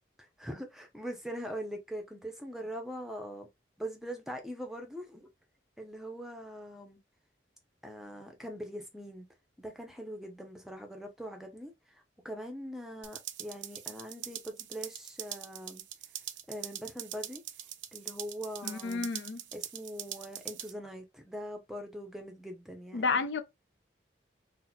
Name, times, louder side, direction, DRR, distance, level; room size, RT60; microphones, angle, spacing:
voice 1, 0.4-3.5 3.8-5.3 5.8-7.0 7.8-9.3 9.6-15.8 16.5-17.4 17.9-19.1 19.5-23.2, equal, ahead, 0.5 m, -42 dB
sound 1, 13.0-20.7, right 11 dB, 85° right, 0.4 m, -43 dB
voice 2, 18.6-19.4 22.9-23.4, left 4 dB, 80° left, 0.5 m, -31 dB
2.8 x 2.0 x 3.9 m
head